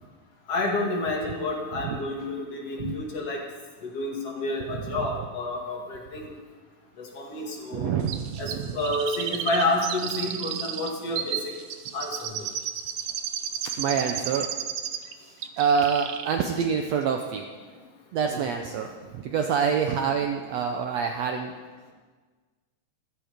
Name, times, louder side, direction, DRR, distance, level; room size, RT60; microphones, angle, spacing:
voice 1, 0.5-3.4 3.8-6.3 7.0-7.9 8.4-11.5 11.9-12.5 18.3-18.4, left 2 dB, 50° left, -1 dB, 2.9 m, -29 dB
voice 2, 4.7-5.1 7.7-8.7 13.8-14.5 15.2-17.5 18.1-21.5, right 6 dB, 75° right, 4 dB, 1.6 m, -27 dB
Chirp tweet, 8.1-15.1 15.4-16.4 16.6-16.7, right 9 dB, 90° right, 1.3 m, -33 dB
15.0 x 13.5 x 5.1 m, 1.5 s
omnidirectional pair, 3.7 m